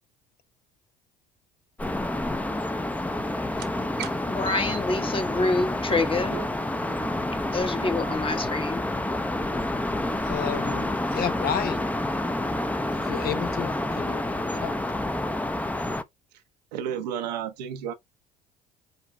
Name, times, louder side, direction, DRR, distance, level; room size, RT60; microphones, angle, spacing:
sound 1, 1.8-16.0, left 1 dB, 5° left, 0.7 m, -28 dB
sound 2, 3.6-8.7, right 10 dB, 55° right, 1.0 m, -42 dB
voice 1, 4.3-6.4 7.5-8.8, left 3 dB, 25° left, 1.2 m, -27 dB
voice 2, 10.2-11.9 12.9-14.8, left 9 dB, 45° left, 0.7 m, -32 dB
voice 3, 16.7-17.9, right 9 dB, 80° right, 0.9 m, -31 dB
5.3 x 3.9 x 2.2 m
hypercardioid pair, 65°, 21 cm